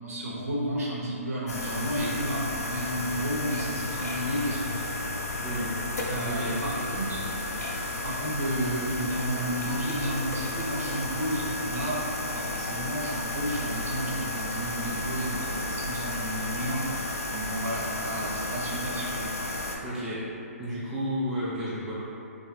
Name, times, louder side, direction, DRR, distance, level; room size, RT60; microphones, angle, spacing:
voice 1, 0.0-4.8 6.1-12.0 12.3-19.5, right 1 dB, 65° right, -5 dB, 0.7 m, -32 dB
sound 1, 1.5-19.8, left 2 dB, 80° left, 0.4 m, -33 dB
voice 2, 5.4-5.7 6.2-6.6 19.8-20.2 20.6-21.9, equal, ahead, -11 dB, 0.3 m, -32 dB
2.3 x 2.1 x 3.1 m, 2.7 s
hypercardioid pair, 150°, 8 cm